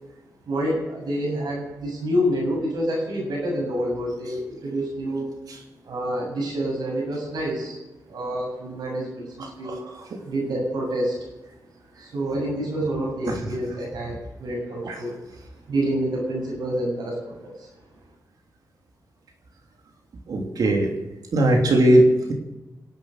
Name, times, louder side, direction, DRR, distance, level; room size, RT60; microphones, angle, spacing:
voice 1, 0.4-5.3 5.8-7.8 8.1-9.8 10.2-11.2 12.0-15.2 15.7-17.7, equal, 90° right, -1 dB, 7.2 m, -27 dB
voice 2, 20.3-20.9 21.3-22.3, right 1 dB, 65° right, 2 dB, 3.3 m, -19 dB
25.0 x 8.7 x 6.7 m, 1.0 s
cardioid pair, 85°, 7 cm